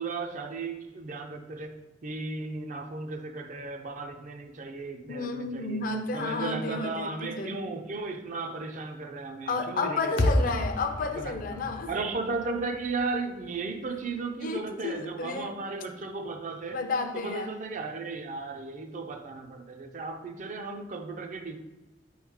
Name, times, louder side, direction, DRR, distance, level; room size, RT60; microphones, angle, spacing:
voice 1, 0.0-5.9 6.1-10.6 11.1-11.6 11.9-16.8 17.1-21.6, right 3 dB, 45° right, 0.4 m, -35 dB
voice 2, 5.1-7.6 9.5-11.9 14.4-15.5 16.7-17.5, left 3 dB, 50° left, 0.4 m, -32 dB
sound 1, 10.2-14.5, left 1 dB, 85° left, 0.8 m, -31 dB
4.6 x 3.1 x 3.6 m
head